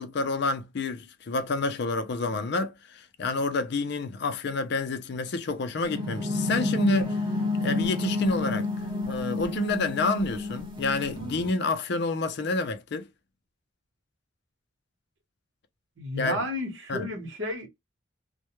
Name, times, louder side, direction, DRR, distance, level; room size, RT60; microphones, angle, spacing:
voice 1, 0.0-7.2 7.6-8.7 9.1-13.1 16.2-16.4 16.9-17.1, left 3 dB, 55° left, 0.4 m, -28 dB
sound 1, 5.8-11.5, left 2 dB, 25° right, 0.9 m, -30 dB
voice 2, 16.0-17.7, left 1 dB, 65° right, 1.0 m, -32 dB
2.2 x 2.1 x 2.9 m
head